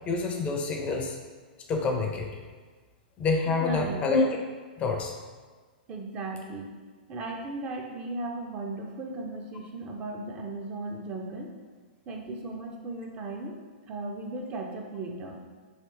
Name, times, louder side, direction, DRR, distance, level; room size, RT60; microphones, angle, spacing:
voice 1, 0.1-1.2 1.7-2.3 3.2-4.3 4.8-5.1, left 3 dB, 25° left, 2 dB, 0.4 m, -27 dB
voice 2, 3.5-4.1 5.9-6.7 7.1-11.5 12.1-13.6 13.9-15.4, right 2 dB, 30° right, 1 dB, 0.4 m, -36 dB
3.2 x 3.0 x 3.1 m, 1.4 s
hypercardioid pair, 130°, 5 cm